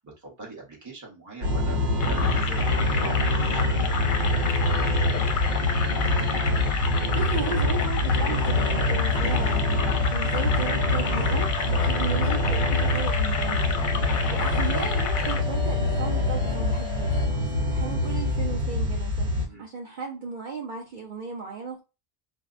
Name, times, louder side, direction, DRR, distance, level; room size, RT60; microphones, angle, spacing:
voice 1, 0.0-5.4 19.5-19.7, right 3 dB, 20° right, 0.8 m, -41 dB
sound 1, 1.4-19.5, left 2 dB, 75° right, 1.0 m, -25 dB
sound 2, 2.0-15.4, left 5 dB, 60° left, 0.6 m, -31 dB
voice 2, 7.1-13.7 14.3-21.8, right 5 dB, 55° right, 0.7 m, -35 dB
sound 3, 8.5-17.3, left 4 dB, 20° left, 0.6 m, -37 dB
4.3 x 2.1 x 2.4 m
omnidirectional pair, 1.1 m